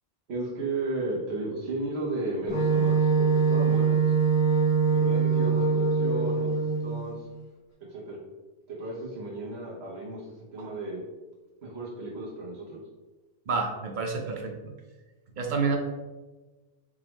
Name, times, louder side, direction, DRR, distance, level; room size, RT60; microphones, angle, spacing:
voice 1, 0.3-4.0 4.9-6.5 6.8-7.3 7.9-8.2 8.7-11.0 11.6-12.8, right 2 dB, 90° right, -4 dB, 1.1 m, -34 dB
Wind instrument woodwind instrument, 2.5-7.2, right 5 dB, 55° left, 1.2 m, -23 dB
voice 2, 13.5-14.5 15.4-15.8, right 4 dB, 55° right, 2 dB, 0.7 m, -29 dB
3.6 x 3.1 x 3.0 m, 1.2 s
omnidirectional pair, 1.0 m